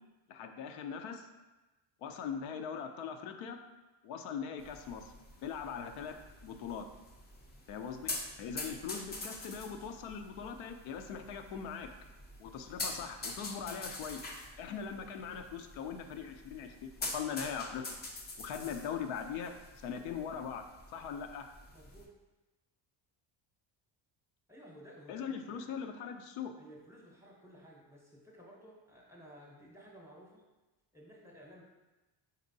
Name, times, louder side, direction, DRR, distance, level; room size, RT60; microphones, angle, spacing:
voice 1, 0.3-1.3 2.0-3.6 4.0-5.1 5.4-6.2 6.4-6.9 7.7-11.9 12.4-14.2 14.6-17.9 18.4-20.6 20.9-21.4 25.1-26.5, left 7 dB, 90° left, 6 dB, 0.6 m, -41 dB
sound 1, 4.6-22.1, left 2 dB, 20° left, 0.4 m, -46 dB
voice 2, 21.7-22.1 24.5-25.6 26.6-30.4 30.9-31.6, equal, 5° right, -3 dB, 0.7 m, -55 dB
4.4 x 4.1 x 2.6 m, 1.1 s
cardioid pair, 140°, 48 cm